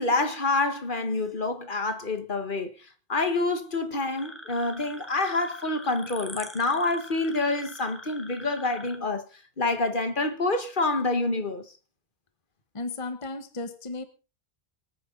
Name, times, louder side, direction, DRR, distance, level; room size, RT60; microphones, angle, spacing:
voice 1, 0.0-2.7 3.1-9.2 9.6-11.7, left 2 dB, 55° left, 1.7 m, -27 dB
sound 1, 4.2-9.0, equal, ahead, 2.1 m, -44 dB
voice 2, 12.7-14.0, left 3 dB, 30° left, 1.2 m, -34 dB
25.0 x 9.2 x 4.0 m
omnidirectional pair, 1.0 m